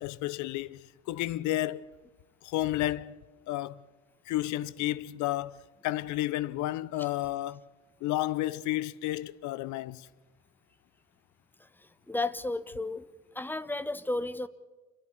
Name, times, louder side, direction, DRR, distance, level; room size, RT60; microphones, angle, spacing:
voice 1, 0.0-1.9 2.4-3.2 3.5-3.8 4.3-7.6 8.0-10.1, left 15 dB, 45° left, 0.7 m, -32 dB
voice 2, 11.6-13.1 13.3-14.5, left 2 dB, 5° left, 0.7 m, -33 dB
27.0 x 11.0 x 9.7 m
figure-of-eight pair, 60°, 42 cm